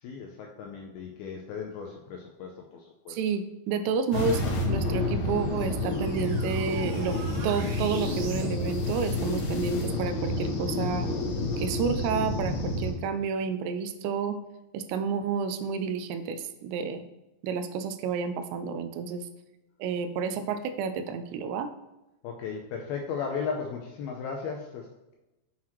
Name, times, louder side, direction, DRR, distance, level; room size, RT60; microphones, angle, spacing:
voice 1, 0.0-3.2 22.2-25.1, left 6 dB, 80° left, 1 dB, 2.2 m, -36 dB
voice 2, 3.1-4.4 4.7-7.2 7.4-11.1 11.6-14.4 14.7-17.0 17.4-19.3 19.8-21.7, right 6 dB, 85° right, 10 dB, 2.7 m, -30 dB
sound 1, 4.1-12.9, left 2 dB, 65° left, 2.8 m, -29 dB
sound 2, 4.6-8.6, right 3 dB, 70° right, 2.8 m, -44 dB
7.5 x 5.7 x 3.0 m, 1.0 s
omnidirectional pair, 5.0 m